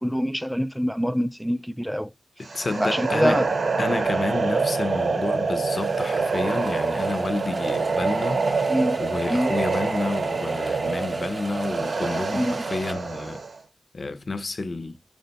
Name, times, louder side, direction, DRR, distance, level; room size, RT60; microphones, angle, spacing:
voice 1, 0.0-2.1 2.8-3.5 8.7-9.0 9.3-9.5 12.3-12.7, equal, ahead, 0.3 m, -25 dB
voice 2, 2.4-3.4 3.8-8.4 9.0-13.4 13.9-15.0, left 3 dB, 55° left, 0.5 m, -30 dB
sound 1, 2.4-13.6, right 4 dB, 80° right, 0.8 m, -26 dB
sound 2, 5.7-12.9, right 2 dB, 50° right, 0.6 m, -42 dB
4.7 x 2.1 x 4.0 m
cardioid pair, 60°, 0 cm